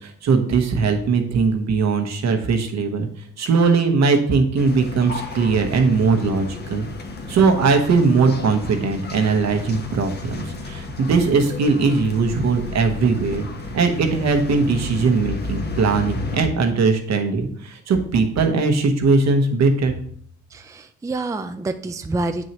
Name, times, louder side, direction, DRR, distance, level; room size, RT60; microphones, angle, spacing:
voice 1, 0.0-3.1 3.4-6.9 7.3-13.5 13.7-20.0, right 4 dB, 60° right, 6 dB, 1.2 m, -20 dB
sound 1, 4.6-16.5, left 3 dB, 35° left, 1.2 m, -32 dB
voice 2, 20.5-22.5, right 2 dB, 10° right, 8 dB, 0.4 m, -27 dB
7.7 x 6.3 x 3.0 m, 0.63 s
cardioid pair, 90°, 30 cm